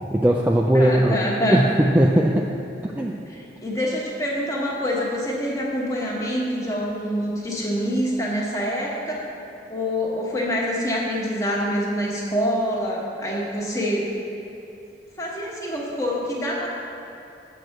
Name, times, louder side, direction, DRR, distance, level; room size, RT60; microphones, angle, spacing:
voice 1, 0.0-1.2 1.5-2.5 2.8-3.2, right 1 dB, 10° right, -1 dB, 0.3 m, -19 dB
voice 2, 0.7-1.6 3.3-9.3 9.7-14.1 15.2-16.7, equal, 20° left, -3 dB, 1.2 m, -26 dB
7.7 x 4.6 x 6.5 m, 2.8 s
head